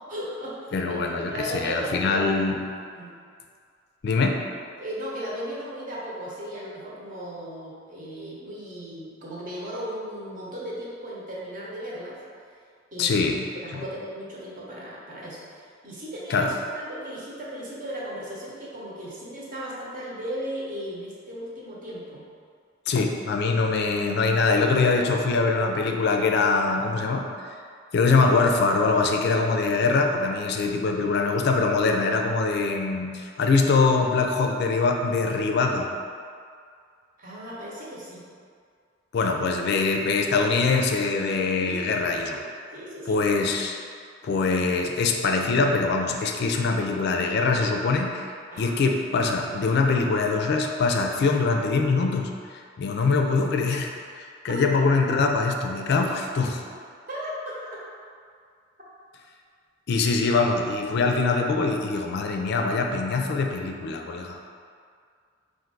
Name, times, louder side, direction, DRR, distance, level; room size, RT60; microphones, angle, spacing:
voice 1, 0.1-2.4 2.9-3.1 4.8-12.2 12.9-13.2 13.6-22.2 32.1-32.2 37.2-38.2 41.6-42.4 42.7-43.2 48.5-48.8 54.5-54.6 57.1-57.8, equal, 45° right, -6 dB, 1.0 m, -36 dB
voice 2, 0.7-2.6 4.0-4.4 13.0-13.4 13.7-13.8 16.3-16.5 22.9-27.3 27.9-35.9 39.1-42.4 43.1-43.8 44.2-48.3 48.6-56.6 59.9-64.4, left 4 dB, 55° left, 3 dB, 0.4 m, -23 dB
4.5 x 2.5 x 3.8 m, 2.2 s
head